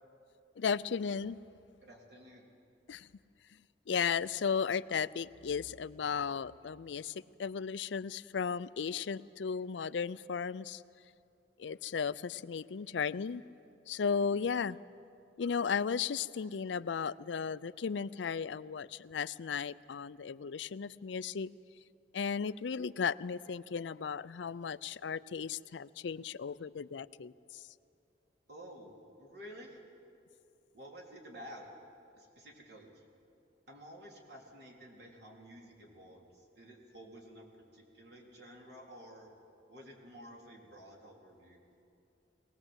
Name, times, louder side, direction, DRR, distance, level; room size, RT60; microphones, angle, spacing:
voice 1, 0.6-1.4 2.9-3.1 3.9-7.1 7.4-10.8 11.6-13.4 13.9-14.8 15.4-21.5 22.1-27.3, left 6 dB, 90° left, 17 dB, 0.5 m, -35 dB
voice 2, 1.8-2.5 14.2-14.5 28.5-28.9 29.2-29.8 30.7-31.7 32.2-33.0 33.7-39.3 39.7-41.6, equal, 65° right, -1 dB, 3.8 m, -52 dB
22.5 x 19.0 x 8.1 m, 2.6 s
head